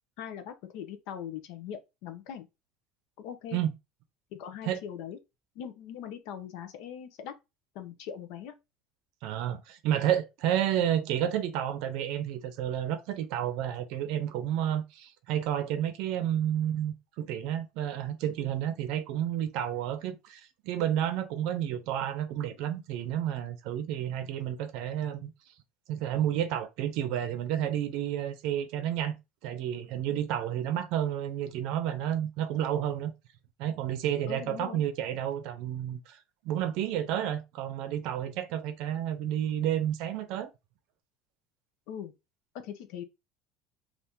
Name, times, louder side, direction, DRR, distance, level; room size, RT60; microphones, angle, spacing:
voice 1, 0.2-2.5 3.2-3.6 4.3-5.2 5.5-7.3 7.7-8.5 10.8-10.9 34.3-34.8 41.9-42.1 42.6-43.0, left 9 dB, 60° left, 0.6 m, -41 dB
voice 2, 9.2-25.3 25.9-33.1 33.6-36.2 36.4-40.5, right 10 dB, 55° right, 0.6 m, -31 dB
2.8 x 2.5 x 3.5 m
cardioid pair, 175°, 0 cm